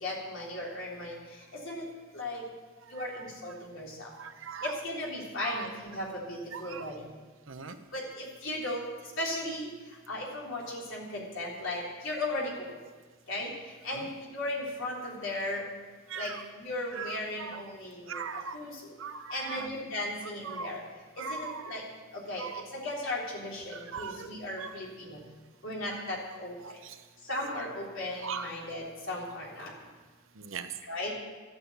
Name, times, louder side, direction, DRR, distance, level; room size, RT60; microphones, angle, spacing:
voice 1, 0.0-1.2 1.6-1.8 2.1-2.4 2.9-4.1 4.6-6.9 7.9-8.8 9.2-9.7 10.1-12.7 13.3-13.5 13.8-14.1 14.3-15.6 16.2-16.3 16.6-18.2 18.5-18.7 19.3-20.8 21.3-21.8 22.3-22.5 22.7-25.2 25.6-26.5 27.3-29.7 30.9-31.1, left 1 dB, 65° left, -3 dB, 3.6 m, -36 dB
voice 2, 2.8-3.6 4.2-4.8 5.4-5.7 6.5-6.9 7.5-7.8 13.9-14.1 16.1-16.4 16.9-17.6 18.1-18.6 19.0-19.7 20.4-20.7 21.2-21.8 22.4-22.6 23.7-24.3 24.6-24.7 26.6-27.0 27.4-27.6 28.2-28.5 30.4-30.7, right 6 dB, 70° right, 8 dB, 0.9 m, -40 dB
13.0 x 8.7 x 8.0 m, 1.4 s
head